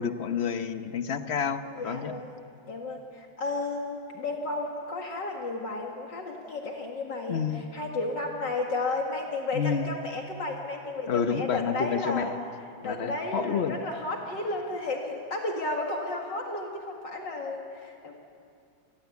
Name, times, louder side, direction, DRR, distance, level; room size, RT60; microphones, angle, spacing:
voice 1, 0.0-2.2 7.3-7.6 9.5-9.9 11.1-12.3 12.8-13.8, left 7 dB, 45° left, 9 dB, 1.0 m, -29 dB
voice 2, 1.7-2.3 2.6-12.3 12.8-18.1, left 2 dB, 65° left, 1 dB, 2.6 m, -33 dB
28.0 x 20.5 x 8.3 m, 2.4 s
omnidirectional pair, 2.1 m